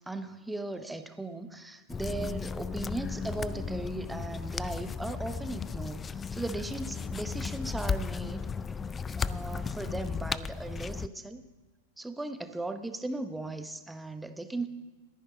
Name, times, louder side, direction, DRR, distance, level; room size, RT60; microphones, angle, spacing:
voice 1, 0.1-8.4 9.1-11.4 12.0-14.7, right 2 dB, 5° right, 9 dB, 0.9 m, -37 dB
sound 1, 1.9-11.1, left 5 dB, 20° left, 0.3 m, -35 dB
20.5 x 10.0 x 3.9 m, 1.3 s
figure-of-eight pair, 95°, 0 cm